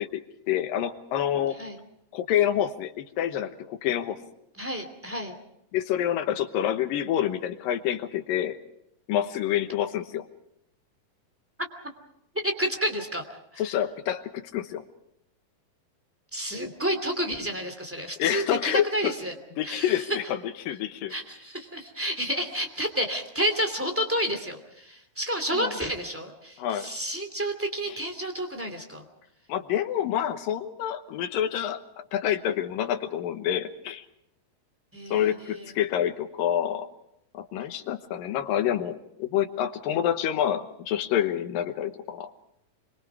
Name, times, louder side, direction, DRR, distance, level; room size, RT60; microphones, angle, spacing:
voice 1, 0.0-1.6 2.1-4.2 5.7-8.6 9.1-10.3 13.6-14.8 18.2-19.1 19.6-21.1 25.5-25.7 26.6-26.9 27.9-28.0 29.5-34.1 35.1-36.9 37.3-42.3, left 10 dB, 80° left, 8 dB, 2.9 m, -27 dB
voice 2, 4.6-5.3 12.4-13.2 13.5-13.6 16.3-19.3 19.6-20.2 21.1-29.0 34.9-35.6, equal, 5° right, 5 dB, 2.0 m, -30 dB
26.5 x 23.5 x 4.9 m, 0.79 s
omnidirectional pair, 4.0 m